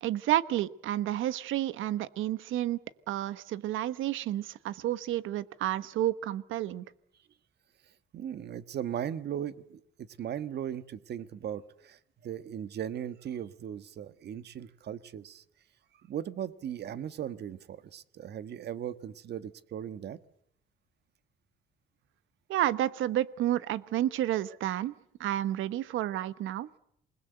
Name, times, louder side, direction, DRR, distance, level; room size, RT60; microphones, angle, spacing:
voice 1, 0.0-2.8 3.1-6.8 22.5-24.9 25.2-26.7, right 13 dB, 85° right, 15 dB, 1.2 m, -30 dB
voice 2, 8.1-15.4 16.0-20.2, right 9 dB, 60° right, 13 dB, 1.5 m, -38 dB
28.0 x 20.5 x 7.9 m, 0.71 s
cardioid pair, 135°, 20 cm